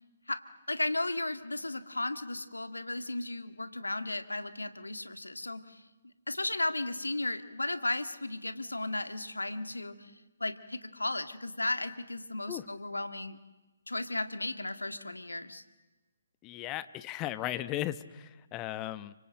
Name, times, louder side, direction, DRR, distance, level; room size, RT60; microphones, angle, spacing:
voice 1, 0.7-5.8 6.3-9.9 10.4-13.4 13.9-15.6, left 2 dB, 85° left, 10 dB, 1.9 m, -35 dB
voice 2, 16.4-19.1, left 14 dB, 20° left, 15 dB, 1.0 m, -36 dB
30.0 x 25.5 x 7.7 m, 1.2 s
figure-of-eight pair, 140°, 0 cm